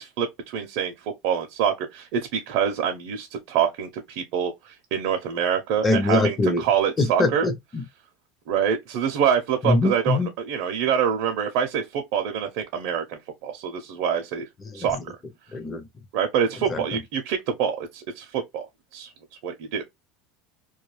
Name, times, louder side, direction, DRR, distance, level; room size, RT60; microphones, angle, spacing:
voice 1, 0.0-7.5 8.5-14.4 14.7-15.0 16.1-18.6 18.9-19.1 19.4-19.8, right 8 dB, 65° right, 0.5 m, -26 dB
voice 2, 5.8-6.6 7.0-7.8 9.6-10.3 14.7-14.8 15.5-15.8 16.7-16.8, left 2 dB, 20° left, 0.5 m, -23 dB
2.2 x 2.2 x 3.0 m
supercardioid pair, 135°, 0 cm